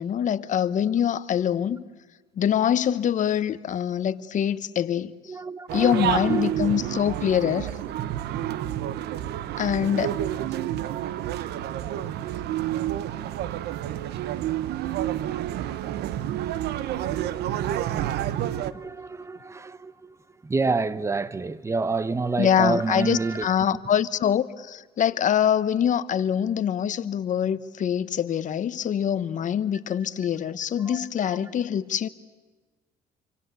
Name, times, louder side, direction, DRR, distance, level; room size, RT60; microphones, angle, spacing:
voice 1, 0.0-1.8 2.4-5.1 5.7-7.7 9.6-10.2 22.4-32.1, left 9 dB, 50° left, 1.1 m, -24 dB
voice 2, 5.3-6.6 17.3-23.5 30.8-31.5, right 3 dB, 15° right, 0.9 m, -29 dB
sound 1, 5.7-18.7, right 12 dB, 75° right, 1.0 m, -29 dB
27.5 x 24.5 x 8.3 m
cardioid pair, 110°, 17 cm